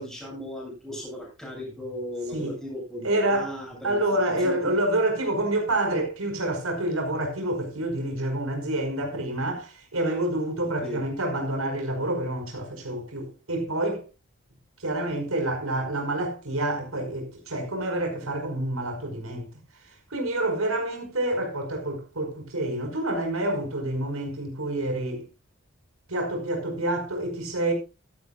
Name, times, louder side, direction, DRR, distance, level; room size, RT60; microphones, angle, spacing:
voice 1, 0.0-4.0 4.4-4.5 10.8-11.0, equal, ahead, 8.0 m, -36 dB
voice 2, 3.0-3.5 3.8-14.0 14.8-19.5 20.1-25.2 26.1-27.7, right 1 dB, 90° right, 5.2 m, -28 dB
15.0 x 13.0 x 2.4 m
head